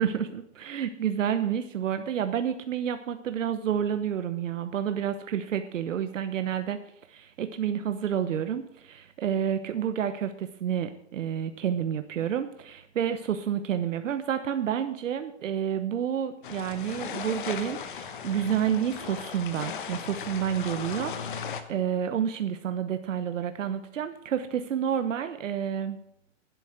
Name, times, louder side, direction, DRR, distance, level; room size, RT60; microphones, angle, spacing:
voice 1, 0.0-6.8 7.1-26.0, right 9 dB, 80° right, 9 dB, 1.1 m, -29 dB
sound 1, 16.4-21.6, left 7 dB, 40° left, 1.1 m, -37 dB
11.0 x 8.4 x 8.0 m, 0.75 s
hypercardioid pair, 175°, 38 cm